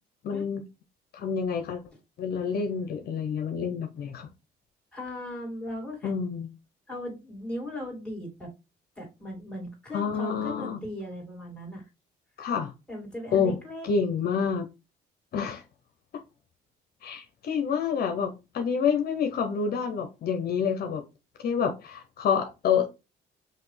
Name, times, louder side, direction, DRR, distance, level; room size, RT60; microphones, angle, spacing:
voice 1, 0.2-0.6 1.1-1.8 2.2-4.3 6.0-6.5 9.9-10.8 12.4-12.7 13.3-13.6 13.8-14.7 15.3-15.6 17.0-21.0 21.4-22.9, left 6 dB, 65° left, 0.8 m, -28 dB
voice 2, 4.9-6.1 6.9-8.5 9.0-11.8 12.9-13.9, left 1 dB, 5° left, 2.5 m, -38 dB
5.8 x 2.7 x 3.3 m
cardioid pair, 115°, 17 cm